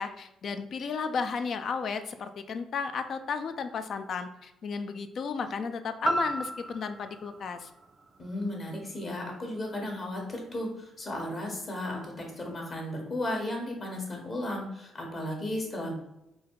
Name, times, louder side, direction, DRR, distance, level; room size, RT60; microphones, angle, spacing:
voice 1, 0.0-7.7, left 5 dB, 60° left, 9 dB, 0.4 m, -33 dB
sound 1, 6.0-10.1 10.6-10.7, right 2 dB, 35° right, 0.4 m, -36 dB
voice 2, 8.2-15.9, left 1 dB, 40° left, 0 dB, 1.4 m, -34 dB
4.0 x 2.4 x 4.6 m, 0.88 s
cardioid pair, 90°, 0 cm